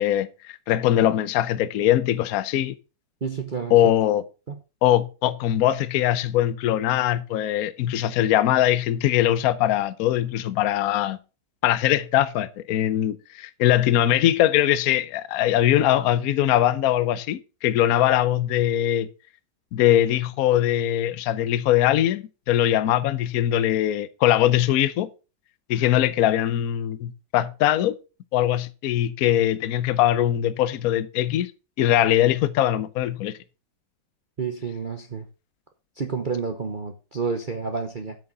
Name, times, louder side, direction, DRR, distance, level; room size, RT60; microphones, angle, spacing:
voice 1, 0.0-2.8 3.7-4.2 4.8-11.2 11.6-19.1 19.7-25.1 25.7-27.9 28.3-31.5 31.8-33.3, left 12 dB, 65° left, 1.1 m, -21 dB
voice 2, 3.2-3.7 4.5-4.6 34.4-35.3 36.0-38.2, right 5 dB, 35° right, 0.9 m, -29 dB
8.7 x 6.4 x 5.4 m
omnidirectional pair, 1.9 m